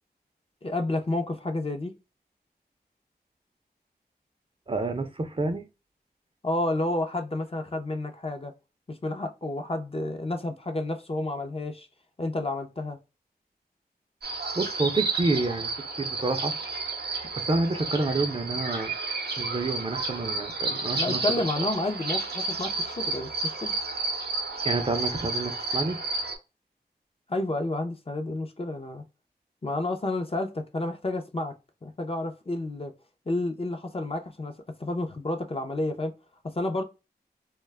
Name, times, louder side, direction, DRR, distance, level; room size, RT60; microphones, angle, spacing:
voice 1, 0.6-1.9 6.4-8.5 8.9-11.9 12.2-13.0 21.0-23.7 27.3-29.0 29.6-31.5 31.8-32.9 33.3-36.1 36.5-36.8, left 2 dB, 35° left, 0.5 m, -30 dB
voice 2, 4.7-5.7 14.6-15.7 16.0-16.5 17.4-18.9 19.4-21.2 24.6-26.0, right 3 dB, 35° right, 0.5 m, -28 dB
sound 1, 14.2-26.4, right 3 dB, 75° right, 0.6 m, -31 dB
2.2 x 2.0 x 3.2 m
cardioid pair, 45°, 17 cm